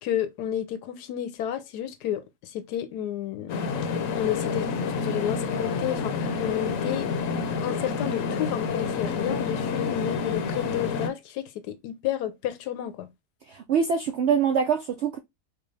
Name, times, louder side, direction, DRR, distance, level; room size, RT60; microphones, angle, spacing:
voice 1, 0.0-7.1 7.6-13.1, left 10 dB, 85° left, 1.2 m, -31 dB
sound 1, 3.5-11.1, left 5 dB, 65° left, 0.9 m, -28 dB
voice 2, 13.5-15.2, right 6 dB, 75° right, 0.6 m, -24 dB
4.6 x 2.3 x 3.2 m
omnidirectional pair, 1.7 m